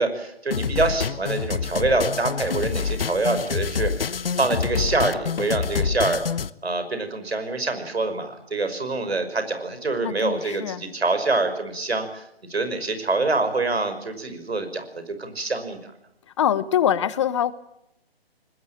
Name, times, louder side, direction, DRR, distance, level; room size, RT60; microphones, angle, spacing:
voice 1, 0.0-6.2 6.6-12.2 12.5-15.9, right 3 dB, 80° right, 9 dB, 5.6 m, -25 dB
sound 1, 0.5-6.5, left 6 dB, 65° left, 1.1 m, -27 dB
voice 2, 10.0-10.8 16.4-17.5, left 10 dB, 30° left, 17 dB, 0.9 m, -23 dB
22.5 x 20.5 x 8.8 m, 0.78 s
figure-of-eight pair, 145°, 31 cm